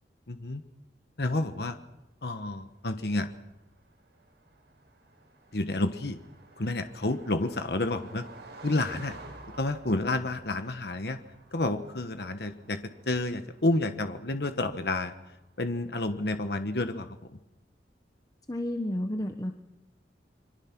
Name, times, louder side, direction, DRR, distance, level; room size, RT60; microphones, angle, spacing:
voice 1, 0.3-0.6 1.2-1.8 2.2-3.3 5.5-6.2 6.6-8.2 8.6-9.1 9.6-11.2 11.5-12.8 13.1-15.1 15.6-17.2, left 2 dB, 65° left, 9 dB, 1.2 m, -30 dB
Car passing by, 2.3-16.0, right 2 dB, 75° right, 6.7 m, -52 dB
voice 2, 18.5-19.5, left 1 dB, 20° left, 5 dB, 1.1 m, -31 dB
27.0 x 23.5 x 6.1 m, 0.94 s
head